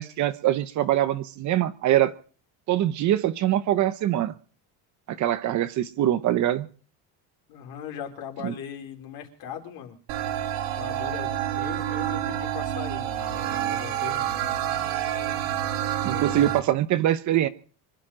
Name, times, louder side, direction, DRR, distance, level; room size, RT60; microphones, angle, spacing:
voice 1, 0.0-2.1 2.7-4.3 5.1-6.7 8.4-8.5 16.0-17.5, right 12 dB, 40° right, 13 dB, 0.9 m, -23 dB
voice 2, 7.5-10.0 10.8-14.6 16.1-16.5, left 8 dB, 55° left, 3 dB, 4.1 m, -39 dB
sound 1, 10.1-16.6, right 11 dB, 75° right, 2.6 m, -28 dB
25.5 x 10.5 x 5.0 m, 0.41 s
cardioid pair, 170°, 44 cm